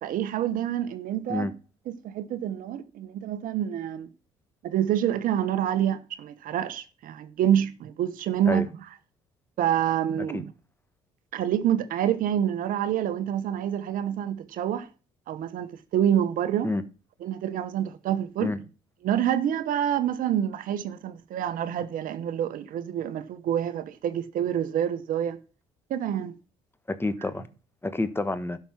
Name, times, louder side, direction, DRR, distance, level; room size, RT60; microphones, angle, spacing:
voice 1, 0.0-1.5 1.9-4.1 4.6-8.7 9.6-10.5 11.3-14.9 15.3-16.7 17.2-18.5 19.0-25.4 25.9-26.3, right 10 dB, 65° right, 1.1 m, -27 dB
voice 2, 26.9-27.4 27.8-28.6, left 2 dB, 15° left, 1.3 m, -28 dB
11.5 x 6.0 x 5.9 m
supercardioid pair, 60°, 15 cm